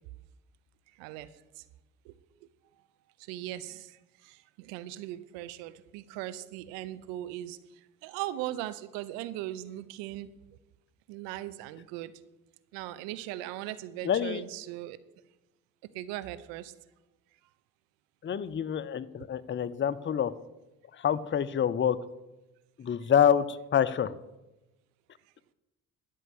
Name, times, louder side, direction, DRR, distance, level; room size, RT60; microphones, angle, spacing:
voice 1, 1.0-1.3 2.1-2.2 3.3-4.0 4.2-7.6 8.0-10.3 11.1-12.1 12.7-15.0 15.9-16.7, right 14 dB, 70° right, 15 dB, 0.8 m, -38 dB
voice 2, 14.0-14.4 18.2-20.3 21.0-22.0 22.8-24.2, left 8 dB, 25° left, 14 dB, 0.7 m, -27 dB
12.0 x 5.6 x 8.3 m, 1.0 s
hypercardioid pair, 45°, 45 cm